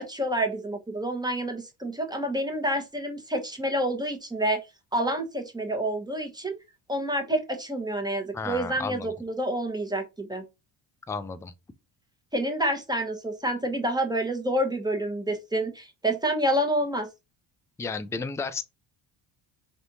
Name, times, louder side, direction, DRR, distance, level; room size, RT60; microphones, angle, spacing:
voice 1, 0.0-4.6 4.9-6.5 6.9-10.4 12.3-17.1, right 1 dB, 10° right, 1.2 m, -28 dB
voice 2, 8.3-9.1 11.1-11.5 17.8-18.6, left 4 dB, 5° left, 0.4 m, -33 dB
4.4 x 3.3 x 2.7 m
supercardioid pair, 85°, 47 cm